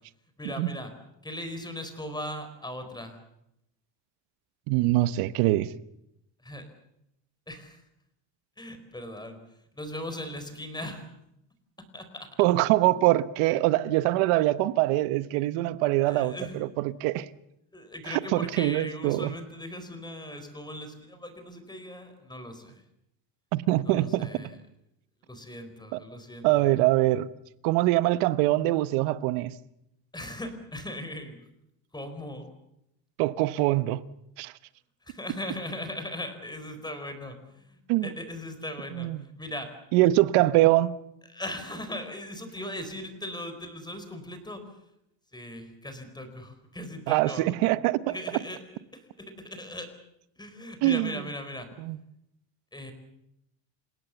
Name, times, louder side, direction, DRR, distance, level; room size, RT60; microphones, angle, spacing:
voice 1, 0.4-0.9 1.2-3.2 6.4-6.7 7.5-7.8 8.6-9.4 9.7-11.1 11.9-12.3 16.1-16.6 17.7-22.8 23.8-24.6 25.2-26.7 30.1-31.4 31.9-32.5 35.1-39.1 39.4-39.7 41.3-44.6 45.3-47.5 48.1-48.6 48.9-49.9 50.4-51.7 52.7-52.9, left 1 dB, 10° left, 4.6 m, -39 dB
voice 2, 4.7-5.7 12.4-17.2 18.1-19.3 23.5-24.3 25.9-26.0 26.4-27.3 27.6-29.5 33.2-34.0 34.4-34.5 37.9-38.1 38.9-39.2 39.9-41.0 47.1-48.1 50.8-51.1 51.8-52.0, right 16 dB, 80° right, 1.3 m, -23 dB
29.5 x 17.0 x 7.1 m
cardioid pair, 130°, 49 cm